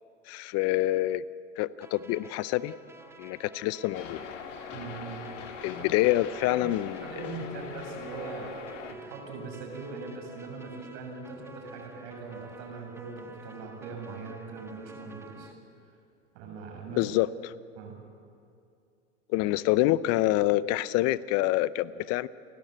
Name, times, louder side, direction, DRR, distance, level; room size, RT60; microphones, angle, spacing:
voice 1, 0.3-1.2 1.6-2.7 3.2-4.2 5.6-7.1 16.9-17.5 19.3-22.3, left 16 dB, 40° left, 18 dB, 0.7 m, -26 dB
sound 1, 1.8-15.5, right 2 dB, 5° right, 1.3 m, -52 dB
sound 2, 3.9-8.9, left 5 dB, 75° left, 1.9 m, -41 dB
voice 2, 4.7-5.2 5.8-5.9 6.5-6.6 7.0-8.6 8.9-15.5 16.3-17.1 17.8-18.0, right 4 dB, 60° right, 2 dB, 6.9 m, -41 dB
29.5 x 12.0 x 8.1 m, 2.4 s
hypercardioid pair, 100°, 38 cm